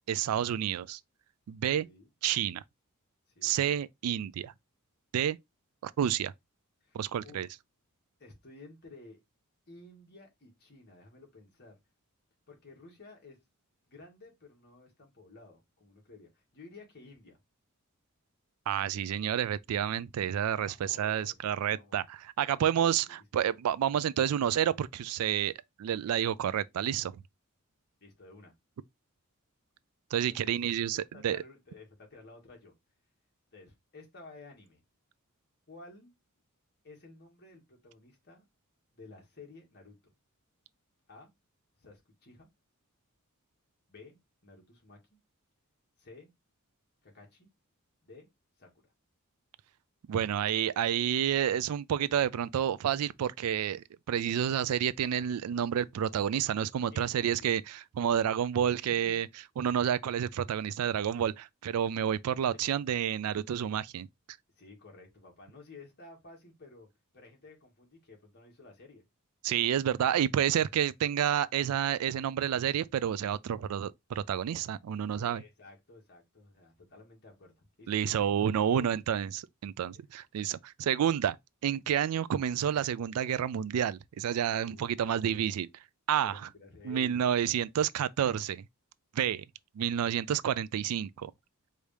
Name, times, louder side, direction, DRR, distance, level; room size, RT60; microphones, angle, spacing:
voice 1, 0.1-1.0 1.5-1.9 2.2-2.6 3.4-4.5 5.1-5.4 5.8-6.3 6.9-7.5 18.7-25.5 25.8-27.2 30.1-31.4 50.1-59.3 59.6-64.1 69.4-75.4 77.9-81.4 81.6-85.7 86.1-86.5 86.8-88.6 89.1-89.4 89.8-91.3, right 9 dB, 80° right, 0.3 m, -29 dB
voice 2, 1.8-2.1 3.3-3.7 6.8-7.5 8.2-9.2 9.7-11.8 12.5-13.4 13.9-17.4 20.6-22.0 23.0-23.2 28.0-28.5 30.3-30.8 31.1-32.7 33.5-34.8 35.7-36.1 36.8-38.4 38.9-40.1 41.1-41.3 41.8-42.5 43.9-45.2 46.0-46.3 47.0-47.5 48.0-48.3 48.6-48.9 56.9-57.5 58.9-59.2 64.6-66.9 67.1-69.0 75.1-78.3 78.5-79.0 79.9-80.0 84.5-85.5 86.2-87.2, left 3 dB, 50° left, 1.7 m, -53 dB
4.7 x 2.7 x 3.3 m
head